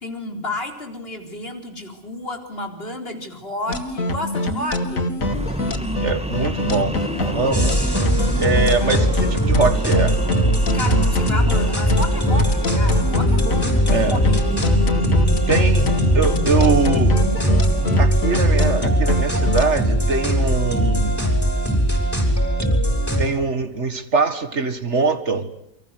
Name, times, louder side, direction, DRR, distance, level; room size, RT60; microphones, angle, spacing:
voice 1, 0.0-5.1 10.7-14.8, left 1 dB, 45° left, 4.3 m, -31 dB
sound 1, 3.7-19.6, left 2 dB, 90° left, 2.6 m, -24 dB
sound 2, 5.2-18.1, right 1 dB, 5° right, 2.0 m, -32 dB
voice 2, 6.0-7.0 7.3-7.7 8.1-10.2 13.9-14.3 15.5-17.2 18.0-21.3 23.2-25.5, right 4 dB, 60° right, 2.1 m, -22 dB
sound 3, 7.5-23.2, right 1 dB, 10° left, 7.0 m, -20 dB
29.0 x 25.0 x 8.1 m
omnidirectional pair, 1.4 m